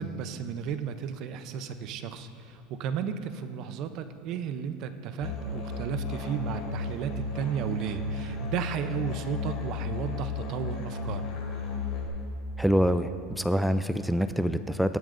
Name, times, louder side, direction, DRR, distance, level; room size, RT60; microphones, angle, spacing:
voice 1, 0.0-11.2, right 7 dB, 50° right, 10 dB, 0.6 m, -34 dB
Musical instrument, 5.2-12.1, left 3 dB, 50° left, 2.7 m, -34 dB
voice 2, 12.6-13.1 13.4-15.0, equal, ahead, 11 dB, 0.3 m, -25 dB
17.5 x 11.0 x 2.6 m, 2.7 s
supercardioid pair, 135°, 0 cm